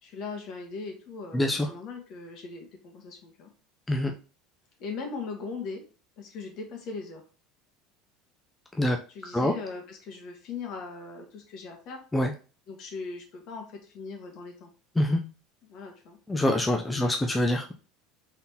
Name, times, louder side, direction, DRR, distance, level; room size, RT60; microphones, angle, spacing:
voice 1, 0.0-3.5 4.8-5.8 6.2-7.2 9.1-12.0 12.7-14.7 15.6-16.2 16.9-17.3, left 4 dB, 60° left, 2 dB, 1.5 m, -39 dB
voice 2, 1.3-1.7 3.9-4.1 8.7-9.0 9.3-9.5 12.1-12.3 15.0-15.2 16.3-17.7, left 1 dB, 10° left, 3 dB, 0.6 m, -25 dB
3.9 x 3.7 x 2.9 m, 0.35 s
hypercardioid pair, 85°, 0 cm